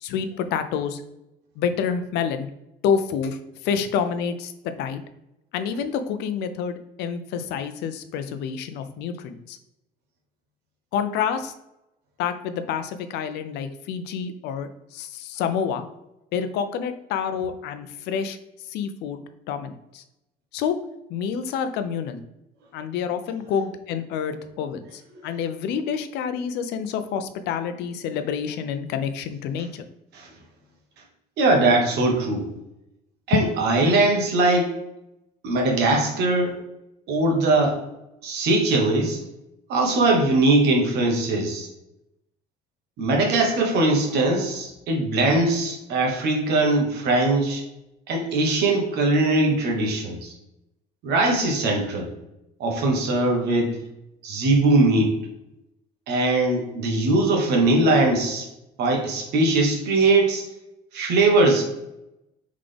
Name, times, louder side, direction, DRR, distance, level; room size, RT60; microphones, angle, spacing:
voice 1, 0.0-1.0 1.6-2.5 2.8-3.4 3.6-5.0 5.5-9.6 10.9-11.5 12.2-15.9 16.3-18.4 18.7-19.2 19.5-20.0 20.5-20.8 21.1-22.2 22.7-29.8 33.3-33.4, left 7 dB, 85° left, 9 dB, 0.5 m, -28 dB
voice 2, 31.4-32.4 33.3-34.7 35.4-36.6 37.1-37.8 38.2-39.2 39.7-41.7 43.0-47.6 48.1-50.3 51.0-52.1 52.6-53.8 54.2-55.1 56.1-58.5 58.8-60.4 60.9-61.7, right 2 dB, 75° right, 1 dB, 1.3 m, -21 dB
3.8 x 3.6 x 3.3 m, 0.89 s
cardioid pair, 110°, 17 cm